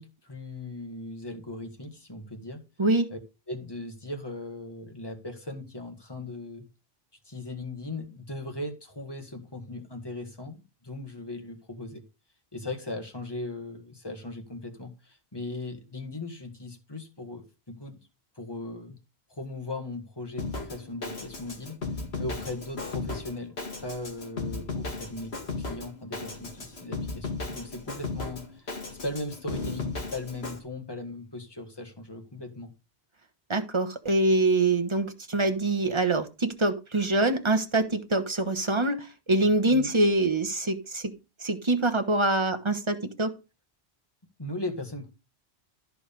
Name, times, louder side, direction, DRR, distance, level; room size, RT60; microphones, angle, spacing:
voice 1, 0.0-2.6 3.1-3.2 3.5-6.7 7.2-12.0 12.5-18.0 18.4-19.0 19.3-21.8 22.2-23.6 23.8-32.7 39.7-39.9 44.4-45.1, left 2 dB, 25° left, 1.8 m, -38 dB
voice 2, 2.8-3.1 33.5-41.1 41.4-43.3, right 2 dB, 30° right, 1.2 m, -25 dB
Drum kit, 20.4-30.6, left 3 dB, 75° left, 2.1 m, -35 dB
13.5 x 4.8 x 5.3 m
omnidirectional pair, 1.1 m